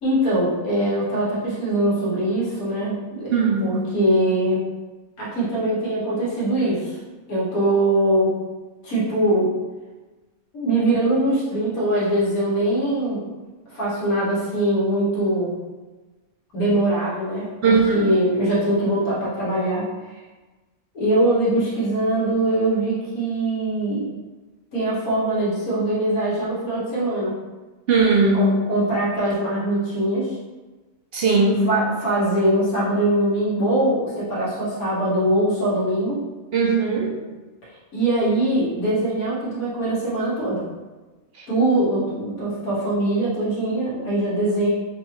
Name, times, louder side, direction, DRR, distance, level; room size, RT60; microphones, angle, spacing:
voice 1, 0.0-4.6 5.2-7.0 7.3-8.3 8.8-9.5 10.5-13.2 13.7-15.5 16.5-19.9 20.9-24.1 24.7-27.3 28.3-30.4 31.7-36.2 37.9-40.6 41.5-44.7, right 1 dB, 90° left, -8 dB, 1.7 m, -22 dB
voice 2, 3.3-3.7 17.6-18.0 27.9-28.5 31.1-31.6 36.5-37.1 41.4-41.5, right 3 dB, 65° right, -1 dB, 0.6 m, -18 dB
4.8 x 2.4 x 2.9 m, 1.2 s
omnidirectional pair, 1.5 m